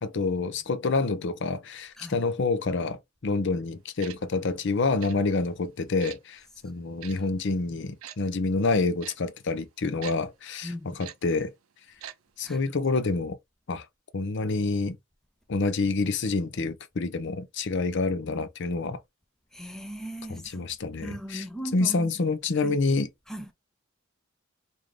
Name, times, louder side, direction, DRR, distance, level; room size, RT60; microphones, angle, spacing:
voice 1, 0.0-11.5 12.4-13.4 13.7-13.8 14.1-15.0 15.5-19.0 20.3-21.4 21.7-23.1, left 3 dB, 55° left, 0.6 m, -27 dB
Tick-tock, 4.0-4.2 5.0-5.2 6.0-6.2 7.0-7.1 8.0-8.2 9.0-9.2 10.0-10.2 11.0-11.2 12.0-12.2 12.4-12.5, right 11 dB, 75° right, 0.4 m, -41 dB
voice 2, 10.6-11.0 12.4-12.6 19.5-22.1 22.5-22.8 23.3-23.5, equal, ahead, 0.4 m, -39 dB
3.6 x 2.6 x 3.1 m
head